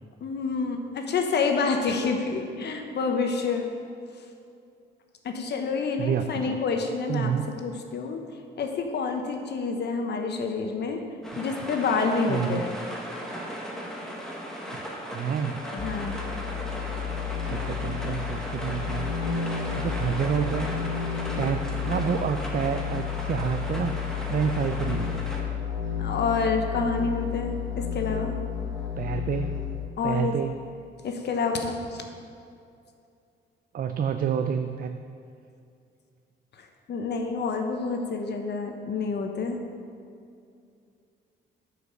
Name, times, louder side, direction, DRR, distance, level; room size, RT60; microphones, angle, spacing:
voice 1, 0.2-3.7 5.2-8.2 8.6-11.0 11.4-12.8 15.7-16.2 26.0-28.4 30.0-30.3 31.0-32.0 36.6-39.6, left 4 dB, 60° left, 4 dB, 1.1 m, -28 dB
voice 2, 6.0-6.6 7.1-7.5 12.3-12.6 15.1-15.6 17.4-19.1 19.7-20.7 21.4-23.9 24.3-25.3 29.0-29.5 30.0-30.5 33.7-35.0, right 7 dB, 45° right, 7 dB, 0.5 m, -28 dB
sound 1, 11.2-25.4, equal, 5° left, 1.6 m, -36 dB
sound 2, 15.8-29.9, left 7 dB, 80° left, 1.7 m, -32 dB
9.5 x 5.2 x 6.6 m, 2.5 s
cardioid pair, 90°, 20 cm